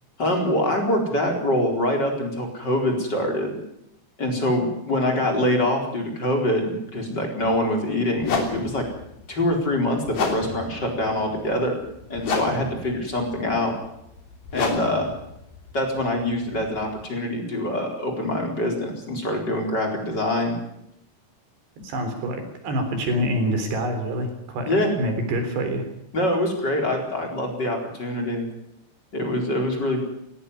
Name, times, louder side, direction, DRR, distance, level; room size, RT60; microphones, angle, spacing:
voice 1, 0.2-3.6 4.2-8.9 9.3-11.8 12.1-13.8 14.5-15.1 15.7-20.6 24.7-24.9 26.1-28.4 29.1-30.0, left 1 dB, 25° left, 2 dB, 4.4 m, -24 dB
sound 1, 7.4-7.6 8.2-17.0, left 4 dB, 55° left, 4.5 m, -31 dB
voice 2, 21.8-25.8, equal, 65° right, 6 dB, 5.7 m, -26 dB
18.0 x 17.0 x 9.8 m, 0.79 s
omnidirectional pair, 5.3 m